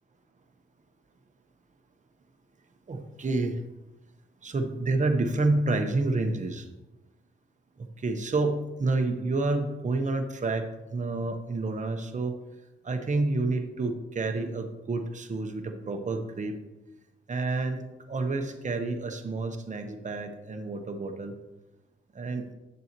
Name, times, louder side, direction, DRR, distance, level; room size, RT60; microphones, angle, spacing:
voice 1, 2.9-3.6 4.4-6.7 7.8-12.4 12.8-16.6 17.3-21.3 22.1-22.5, right 3 dB, 35° right, 5 dB, 1.1 m, -29 dB
9.4 x 6.9 x 3.0 m, 1.0 s
cardioid pair, 80°, 21 cm